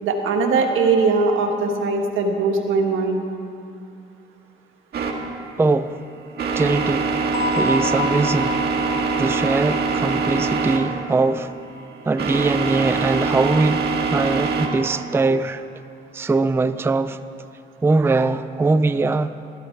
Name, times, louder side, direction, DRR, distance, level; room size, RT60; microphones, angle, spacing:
voice 1, 0.0-3.2, right 4 dB, 85° right, 3 dB, 1.4 m, -20 dB
sound 1, 4.9-14.7, right 4 dB, 55° right, 1.9 m, -24 dB
voice 2, 5.6-6.0 6.5-7.2 7.6-8.6 9.2-11.5 12.1-13.8 14.1-15.6 16.1-17.2 17.8-19.4, right 3 dB, 10° right, 12 dB, 0.4 m, -21 dB
sound 2, 7.3-12.0, left 3 dB, 70° left, 1.4 m, -30 dB
15.5 x 13.5 x 4.5 m, 2.5 s
cardioid pair, 90°, 20 cm